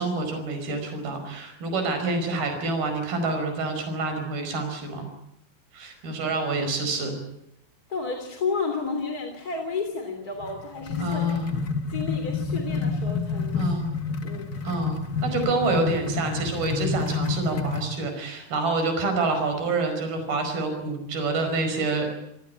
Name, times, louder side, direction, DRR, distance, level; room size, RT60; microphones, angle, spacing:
voice 1, 0.0-5.1 5.7-7.2 11.0-11.6 13.6-13.9 14.6-22.1, right 3 dB, 65° right, 6 dB, 7.0 m, -27 dB
voice 2, 7.9-11.3 11.9-13.7 14.2-14.5, left 4 dB, 25° left, 4 dB, 3.2 m, -31 dB
sound 1, 10.4-17.9, left 4 dB, 70° left, 0.9 m, -29 dB
28.5 x 18.0 x 8.7 m, 0.80 s
omnidirectional pair, 4.6 m